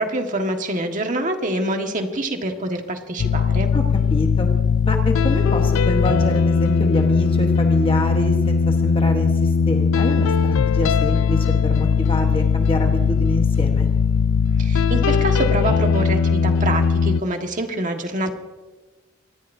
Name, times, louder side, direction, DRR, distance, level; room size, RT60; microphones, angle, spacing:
voice 1, 0.0-3.7 14.6-18.3, right 1 dB, 40° right, 4 dB, 1.7 m, -25 dB
sound 1, 3.2-17.2, left 5 dB, 80° left, 0.4 m, -19 dB
voice 2, 4.1-4.5 4.9-13.9, left 1 dB, 25° left, 3 dB, 1.2 m, -26 dB
25.0 x 19.0 x 2.7 m, 1.2 s
head